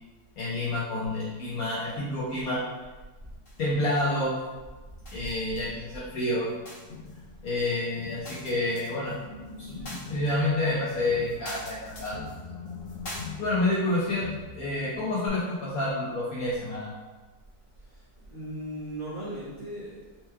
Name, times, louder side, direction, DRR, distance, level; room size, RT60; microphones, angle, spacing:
voice 1, 0.4-2.6 3.6-4.3 5.1-6.5 7.4-9.1 9.6-12.2 13.4-14.2 14.5-16.9, left 2 dB, 60° left, -8 dB, 1.1 m, -28 dB
sound 1, 3.4-4.2 4.5-5.7 5.9-13.3, left 2 dB, 40° left, 1.0 m, -43 dB
Crowd, 6.9-8.7 9.0-13.9 14.2-14.9 15.3-15.4, left 4 dB, 85° left, 0.5 m, -45 dB
voice 2, 17.8-20.2, right 1 dB, 40° right, -10 dB, 0.7 m, -38 dB
4.4 x 3.0 x 2.2 m, 1.2 s
omnidirectional pair, 1.9 m